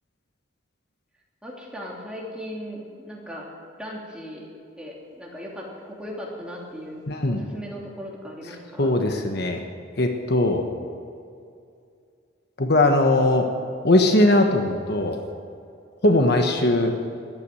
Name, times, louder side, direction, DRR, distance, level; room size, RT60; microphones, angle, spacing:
voice 1, 1.4-3.5 3.8-4.5 4.8-7.0 7.3-8.9, equal, 5° right, -3 dB, 3.0 m, -37 dB
voice 2, 7.1-7.5 8.8-9.6 10.0-10.7 12.6-13.5 13.8-15.2 16.0-16.9, left 1 dB, 55° left, 4 dB, 1.3 m, -20 dB
14.5 x 10.5 x 9.1 m, 2.4 s
head